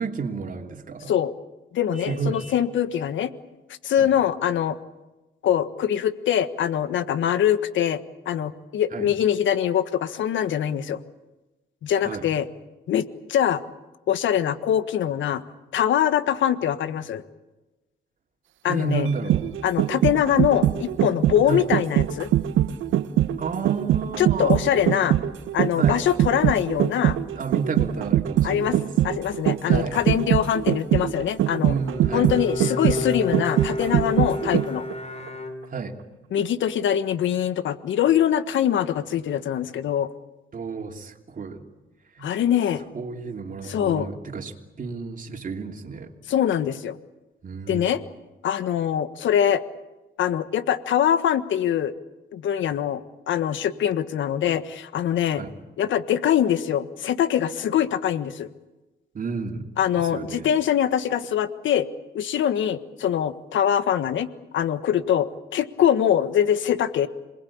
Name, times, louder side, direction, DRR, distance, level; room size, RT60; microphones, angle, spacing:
voice 1, 0.0-1.1 2.0-2.4 4.0-4.2 8.9-9.1 12.0-12.3 18.7-19.5 21.5-21.7 23.4-24.6 25.7-26.0 27.3-28.9 29.6-30.0 31.6-32.3 35.7-36.0 40.5-41.6 42.1-42.3 42.9-46.1 47.4-48.0 55.3-55.5 59.1-59.7 60.0-60.5, right 5 dB, 40° right, 2 dB, 3.0 m, -31 dB
voice 2, 1.7-3.3 3.8-4.8 5.4-11.0 11.8-12.5 12.9-13.6 14.1-15.4 15.7-17.2 18.6-19.1 19.6-22.3 24.2-25.2 25.5-27.2 28.4-28.8 29.0-31.7 32.1-34.8 36.3-40.1 42.2-42.8 43.6-44.1 46.3-47.0 47.7-48.0 48.4-49.6 50.2-51.9 52.3-55.4 55.8-58.5 59.8-61.9 62.1-64.3 64.5-67.1, left 10 dB, 70° left, 12 dB, 1.5 m, -23 dB
Vehicle horn car horn honking, 1.9-2.7, right 3 dB, 5° right, 4.4 m, -48 dB
sound 1, 19.1-34.9 35.3-35.4, right 12 dB, 85° right, 1.1 m, -22 dB
Bowed string instrument, 31.7-36.1, left 1 dB, 35° left, 3.2 m, -31 dB
27.0 x 20.5 x 8.6 m, 1.1 s
cardioid pair, 90°, 20 cm